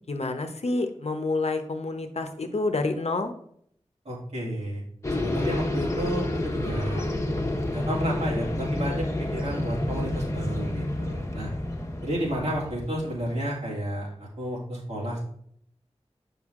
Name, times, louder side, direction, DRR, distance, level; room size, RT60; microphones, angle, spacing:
voice 1, 0.1-3.3, left 2 dB, 65° left, 7 dB, 0.8 m, -28 dB
voice 2, 4.0-4.8 5.1-7.1 7.7-11.5 12.0-15.2, equal, 70° right, -4 dB, 2.7 m, -32 dB
sound 1, 5.0-13.4, left 1 dB, 25° left, 1.1 m, -29 dB
6.3 x 5.5 x 3.6 m, 0.66 s
wide cardioid pair, 50°, 12 cm